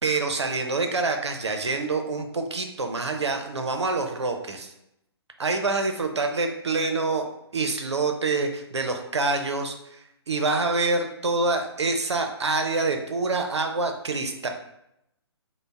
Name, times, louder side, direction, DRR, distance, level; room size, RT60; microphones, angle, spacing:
voice 1, 0.0-4.7 5.4-14.5, right 3 dB, 80° right, 4 dB, 0.6 m, -26 dB
3.9 x 2.0 x 3.3 m, 0.82 s
figure-of-eight pair, 130°, 14 cm